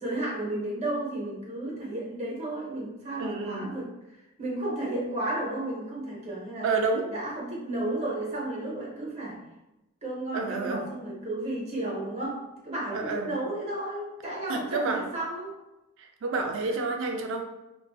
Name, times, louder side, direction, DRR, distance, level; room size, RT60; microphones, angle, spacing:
voice 1, 0.0-3.9 4.4-6.7 7.1-9.4 10.0-15.5 16.6-16.7, right 1 dB, 30° right, -4 dB, 0.7 m, -33 dB
voice 2, 3.2-3.7 6.6-7.1 10.3-10.8 12.9-13.3 14.5-15.0 16.0-17.4, right 3 dB, 60° right, 3 dB, 0.4 m, -29 dB
2.5 x 2.2 x 2.3 m, 0.97 s
head